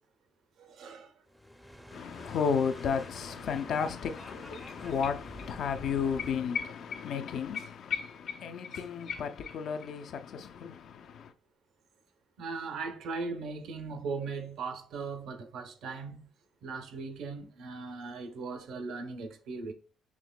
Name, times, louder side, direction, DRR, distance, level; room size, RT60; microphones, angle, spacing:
voice 1, 0.6-1.1 12.4-16.3 16.6-19.7, right 4 dB, 80° right, 0.8 m, -38 dB
sound 1, 1.3-6.5, equal, ahead, 0.5 m, -49 dB
voice 2, 1.9-11.3, left 6 dB, 70° left, 0.5 m, -33 dB
sound 2, 3.7-3.8 4.1-5.5 5.7-5.8 6.2-9.9 10.2-10.3, left 7 dB, 85° left, 1.2 m, -40 dB
6.1 x 3.1 x 2.2 m
cardioid pair, 100°, 0 cm